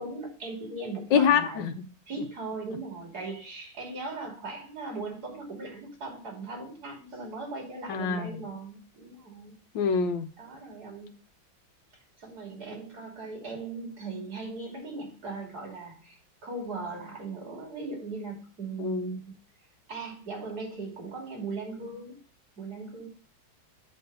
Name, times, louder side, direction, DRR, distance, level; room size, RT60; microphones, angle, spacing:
voice 1, 0.0-1.7 2.1-9.6 10.4-11.1 12.2-19.3 19.9-22.2 22.6-23.1, right 3 dB, 50° right, -1 dB, 3.4 m, -38 dB
voice 2, 1.1-1.7 7.9-8.4 9.7-10.3 18.8-19.1, left 6 dB, 70° left, 7 dB, 1.4 m, -25 dB
8.6 x 3.9 x 6.7 m, 0.39 s
omnidirectional pair, 2.2 m